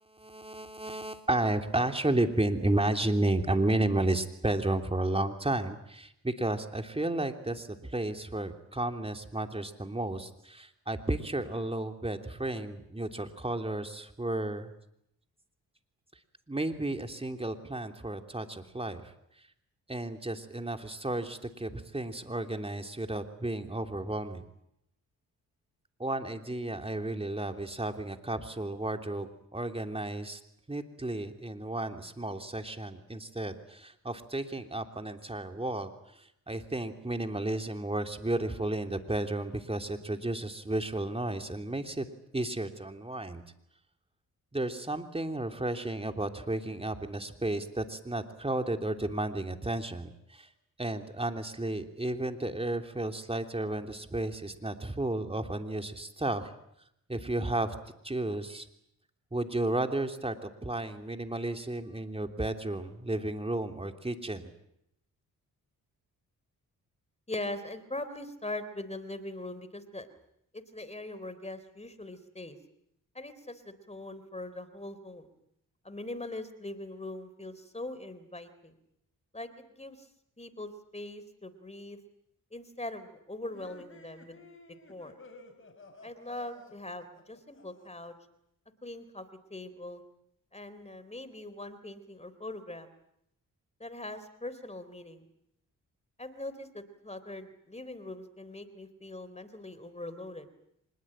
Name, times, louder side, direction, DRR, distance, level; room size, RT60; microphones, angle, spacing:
voice 1, 0.1-14.7 16.5-19.1 19.9-24.4 26.0-30.4 30.7-42.1 42.3-43.4 44.5-50.5 50.8-56.5 57.1-57.7 58.0-58.7 59.3-64.5, right 2 dB, 15° right, 6 dB, 3.2 m, -33 dB
voice 2, 67.3-70.1 70.5-72.6 73.1-75.3 75.8-78.7 79.3-80.1 80.4-82.0 82.5-84.4 84.9-85.2 86.0-88.1 88.8-90.0 90.5-92.9 93.8-95.3 96.2-100.5, left 2 dB, 20° left, 12 dB, 3.7 m, -41 dB
sound 1, 83.5-88.1, left 2 dB, 35° left, 5.9 m, -54 dB
25.0 x 21.0 x 8.9 m, 0.77 s
cardioid pair, 55°, 36 cm